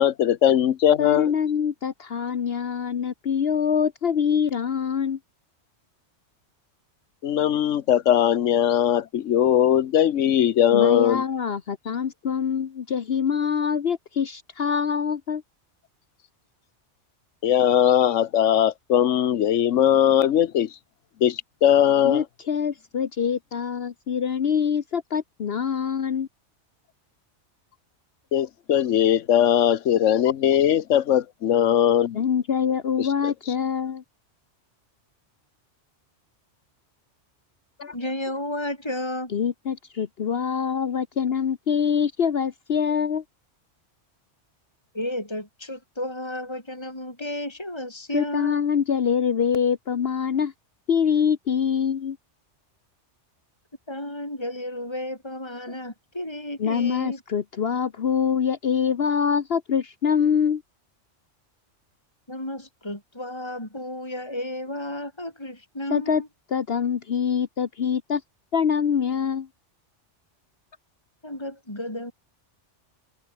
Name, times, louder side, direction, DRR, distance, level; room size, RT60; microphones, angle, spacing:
voice 1, 0.0-1.3 7.2-11.2 17.4-20.7 21.2-22.2 28.3-32.2 33.0-33.3, left 10 dB, 85° left, 1.2 m, -20 dB
voice 2, 1.0-5.2 10.7-15.4 22.0-26.3 32.1-34.0 37.8-37.9 39.3-43.2 48.1-50.5 50.9-52.2 56.6-60.6 65.9-66.2 66.5-68.2 68.5-69.5, left 7 dB, 55° left, 1.1 m, -24 dB
voice 3, 37.9-39.3 44.9-48.6 53.9-57.2 62.3-66.3 71.2-72.1, left 1 dB, 20° left, 4.7 m, -33 dB
omnidirectional pair, 1.2 m